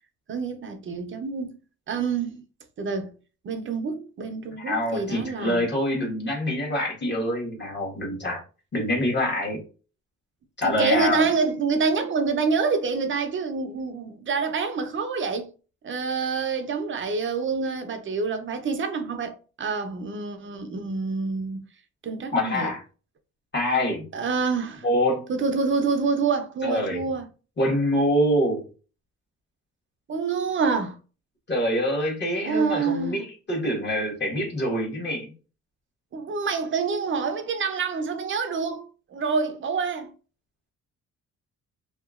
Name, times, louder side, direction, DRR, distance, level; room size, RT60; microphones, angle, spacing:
voice 1, 0.3-1.6 1.9-2.4 2.8-3.1 3.4-5.6 10.6-15.5 15.8-21.6 22.0-22.7 24.1-24.9 25.3-27.3 30.1-31.0 32.4-33.2 36.1-38.8 39.1-40.1, right 5 dB, 40° right, 0.6 m, -27 dB
voice 2, 4.6-8.4 8.7-9.6 10.6-11.3 22.3-22.8 23.5-24.0 24.8-25.3 26.6-27.0 27.6-28.6 31.5-35.3, equal, 35° left, 1.3 m, -25 dB
2.8 x 2.3 x 2.4 m
cardioid pair, 90°, 30 cm